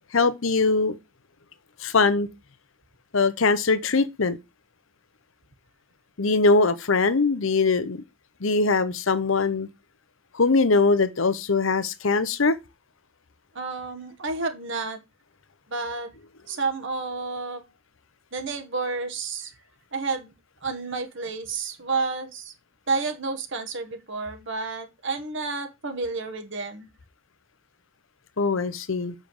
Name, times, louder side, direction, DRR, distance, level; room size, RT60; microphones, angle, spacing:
voice 1, 0.1-1.0 1.8-2.3 3.1-4.4 6.2-8.0 8.4-9.7 10.3-12.6 28.4-29.1, left 3 dB, 65° left, 0.8 m, -22 dB
voice 2, 13.5-15.0 15.7-16.1 16.5-17.6 18.3-19.5 19.9-20.3 20.6-22.5 22.9-26.9, right 4 dB, 60° right, 1.5 m, -30 dB
7.3 x 5.4 x 4.8 m
head